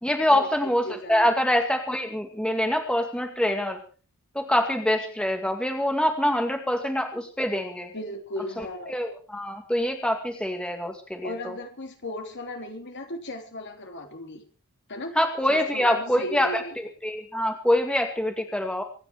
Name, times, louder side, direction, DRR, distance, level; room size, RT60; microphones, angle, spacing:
voice 1, 0.0-3.8 4.3-7.9 8.6-11.5 15.2-18.8, left 1 dB, 5° left, 4 dB, 2.2 m, -25 dB
voice 2, 0.8-1.3 7.9-9.0 11.2-14.4 14.9-15.1 15.5-16.8, left 1 dB, 55° left, 4 dB, 3.4 m, -36 dB
26.0 x 9.9 x 4.8 m, 0.39 s
head